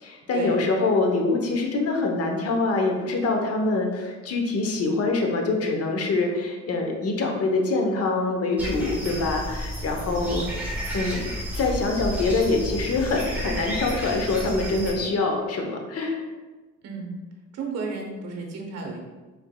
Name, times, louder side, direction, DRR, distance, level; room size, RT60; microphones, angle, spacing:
voice 1, 0.0-10.4 10.9-11.3 11.6-16.2, left 3 dB, 50° left, 2 dB, 0.8 m, -25 dB
sound 1, 8.6-14.9, equal, 5° right, 1.1 m, -31 dB
voice 2, 16.8-17.1 17.5-19.0, right 4 dB, 55° right, 1 dB, 0.8 m, -33 dB
4.7 x 3.4 x 2.2 m, 1.3 s
cardioid pair, 90°, 30 cm